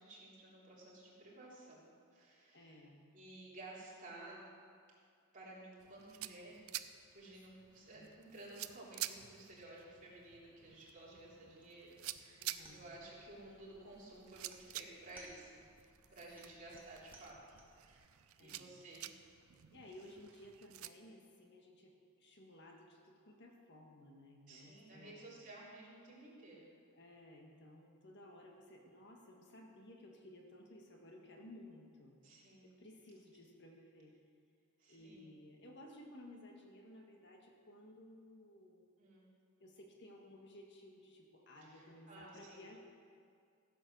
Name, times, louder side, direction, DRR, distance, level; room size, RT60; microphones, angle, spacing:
voice 1, 0.0-2.8 3.1-4.5 5.3-6.6 7.1-15.6 16.1-17.4 17.7-18.1 18.4-19.1 24.5-26.7 32.2-32.7 34.8-35.3 39.0-39.2 41.6-42.7, right 2 dB, 35° right, -6 dB, 3.3 m, -54 dB
voice 2, 2.5-3.0 7.9-8.1 12.4-12.9 18.4-18.7 19.7-21.9 22.2-25.2 26.9-32.2 32.8-34.1 34.9-38.8 39.6-42.8, left 1 dB, 50° left, 1 dB, 1.5 m, -57 dB
sound 1, 5.8-20.9, right 14 dB, 70° right, 0.5 m, -50 dB
sound 2, 12.5-17.9, right 2 dB, 10° right, 1.6 m, -64 dB
15.5 x 7.8 x 6.2 m, 2.3 s
head